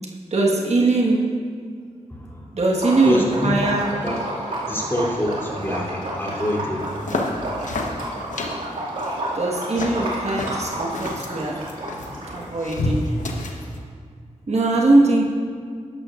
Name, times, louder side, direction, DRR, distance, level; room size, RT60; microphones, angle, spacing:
voice 1, 0.3-1.3 2.5-3.9 9.3-11.7 12.3-13.2 14.5-15.2, right 2 dB, 55° right, -2 dB, 1.4 m, -21 dB
voice 2, 2.1-2.5 3.0-3.5 4.0-4.1 4.7-6.9, equal, 20° left, -4 dB, 2.9 m, -25 dB
Liquid, 2.7-12.6, right 1 dB, 85° right, 2.2 m, -31 dB
sound 1, 6.8-13.8, left 2 dB, 75° left, 1.1 m, -30 dB
13.0 x 11.0 x 2.5 m, 2.1 s
cardioid pair, 50°, 13 cm